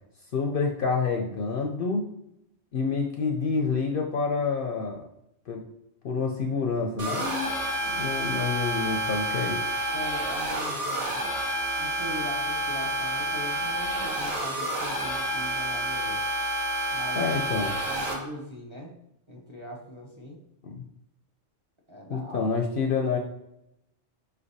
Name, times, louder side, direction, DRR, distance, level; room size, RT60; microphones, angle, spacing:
voice 1, 0.3-2.0 2.7-5.0 5.5-5.6 6.0-7.6 7.9-9.6 17.2-17.8 20.6-20.8 22.1-23.2, left 4 dB, 60° left, 2 dB, 0.6 m, -28 dB
sound 1, 7.0-18.1, right 1 dB, 75° right, 1.5 m, -29 dB
voice 2, 9.9-11.2 11.8-16.2 16.9-17.2 17.9-18.9 19.3-20.4 21.9-22.5, left 1 dB, 30° right, -2 dB, 0.7 m, -40 dB
5.3 x 3.4 x 2.6 m, 0.82 s
omnidirectional pair, 1.2 m